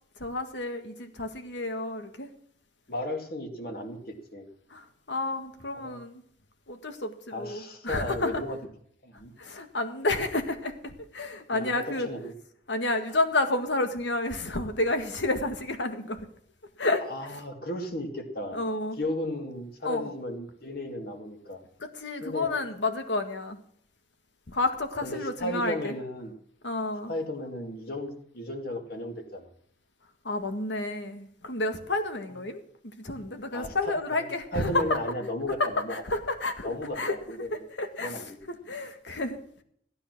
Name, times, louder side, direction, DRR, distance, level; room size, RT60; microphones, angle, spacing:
voice 1, 0.2-2.3 4.7-6.2 6.7-8.4 9.4-12.1 12.7-16.3 16.8-17.4 18.5-19.0 19.8-20.1 21.8-23.6 24.5-26.0 26.6-27.1 30.2-35.0 35.9-37.2 37.5-39.6, left 2 dB, 80° left, 7 dB, 1.9 m, -30 dB
voice 2, 2.9-4.5 5.8-6.0 7.3-8.6 9.0-9.3 11.5-12.3 17.1-18.6 19.0-21.6 22.2-22.5 25.0-26.3 27.1-29.5 33.5-36.0 36.6-37.6 38.0-38.3, left 1 dB, 55° left, 4 dB, 2.4 m, -35 dB
15.0 x 9.7 x 6.1 m, 0.63 s
head